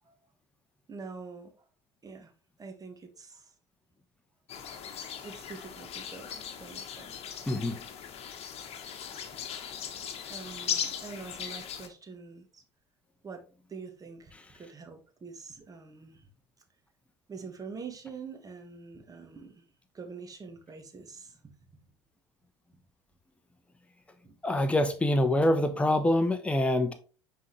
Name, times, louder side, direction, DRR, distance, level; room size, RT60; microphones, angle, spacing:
voice 1, 0.9-1.6 2.0-2.3 2.6-3.5 5.2-7.4 8.4-8.5 10.3-12.6 13.2-13.4 13.7-16.3 17.3-19.7 19.9-21.5 24.2-24.3, right 5 dB, 25° right, 1.5 m, -45 dB
sound 1, 4.5-11.9, left 8 dB, 45° left, 1.3 m, -38 dB
voice 2, 7.5-7.8 24.4-26.9, left 1 dB, 10° left, 0.9 m, -25 dB
9.3 x 3.9 x 3.2 m
hypercardioid pair, 70°, 14 cm